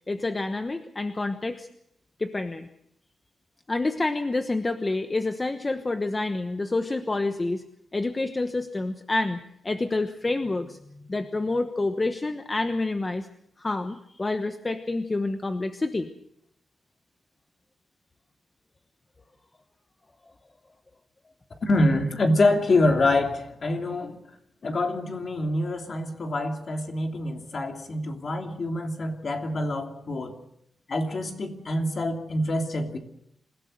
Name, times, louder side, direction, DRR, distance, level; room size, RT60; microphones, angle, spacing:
voice 1, 0.1-1.7 2.2-2.7 3.7-7.6 7.9-10.8 11.1-13.3 13.6-16.1, left 2 dB, 20° left, 8 dB, 1.1 m, -28 dB
voice 2, 21.6-24.2 24.6-30.4 30.9-33.0, left 2 dB, 45° left, 4 dB, 3.0 m, -25 dB
27.5 x 17.0 x 6.6 m, 0.75 s
wide cardioid pair, 125°, 0 cm